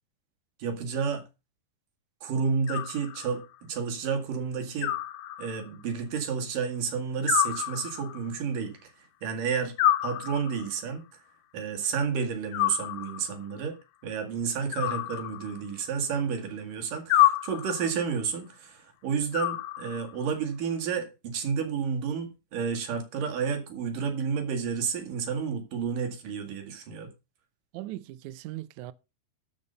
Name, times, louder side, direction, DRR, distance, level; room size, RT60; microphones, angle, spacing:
voice 1, 0.6-1.2 2.2-4.9 5.4-8.8 9.2-9.7 10.0-11.0 11.5-13.8 14.0-27.1, right 6 dB, 65° right, 3.6 m, -31 dB
Animal, 2.7-3.6 4.8-5.8 7.3-8.4 9.8-10.8 12.5-13.4 14.7-15.8 17.1-18.0 19.3-20.2, left 14 dB, 75° left, 2.6 m, -28 dB
voice 2, 27.7-28.9, right 16 dB, 85° right, 1.6 m, -39 dB
12.5 x 5.6 x 6.6 m
omnidirectional pair, 4.2 m